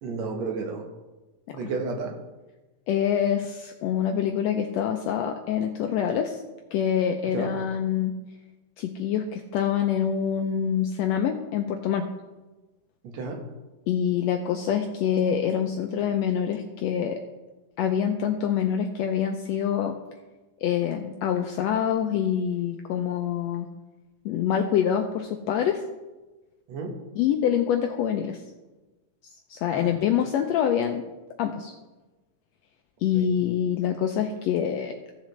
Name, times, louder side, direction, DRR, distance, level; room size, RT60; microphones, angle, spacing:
voice 1, 0.0-0.8 1.5-2.1 7.3-7.5 13.0-13.4 26.7-26.9 29.7-29.9 33.1-33.3, right 4 dB, 65° right, 2 dB, 2.2 m, -32 dB
voice 2, 2.9-6.4 6.7-8.2 8.8-12.1 13.9-17.2 17.8-20.0 20.6-23.7 24.2-25.8 27.2-28.4 29.5-31.0 31.4-31.7 33.0-34.9, left 9 dB, 90° left, 5 dB, 1.5 m, -25 dB
15.0 x 7.3 x 3.2 m, 1.2 s
omnidirectional pair, 3.6 m